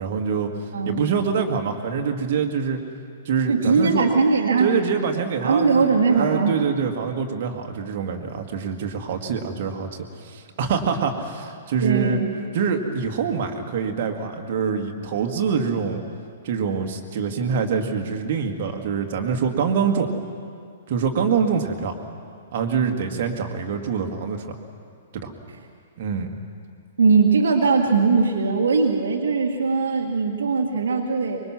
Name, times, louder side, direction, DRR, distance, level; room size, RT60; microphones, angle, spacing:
voice 1, 0.0-2.8 3.3-4.0 4.6-12.2 12.5-16.0 16.4-20.1 20.9-22.0 22.5-24.5 25.1-25.3 26.0-26.3, right 6 dB, 45° right, 3 dB, 2.0 m, -25 dB
voice 2, 0.7-1.1 3.5-4.7 5.4-6.6 11.8-12.3 27.0-31.4, right 4 dB, 60° right, 2 dB, 1.8 m, -20 dB
24.5 x 22.0 x 6.1 m, 2.2 s
figure-of-eight pair, 110°, 0 cm